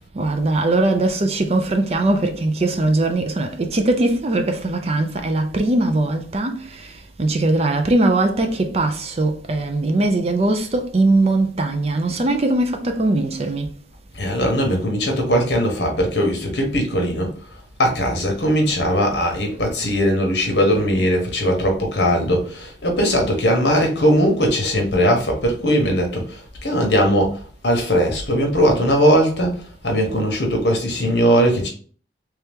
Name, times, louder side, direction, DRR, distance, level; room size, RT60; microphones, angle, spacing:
voice 1, 0.1-13.8, right 2 dB, 35° right, 0.5 m, -20 dB
voice 2, 14.1-17.3 17.8-27.4 27.6-31.7, equal, 60° left, 1.2 m, -19 dB
3.3 x 2.9 x 3.4 m
head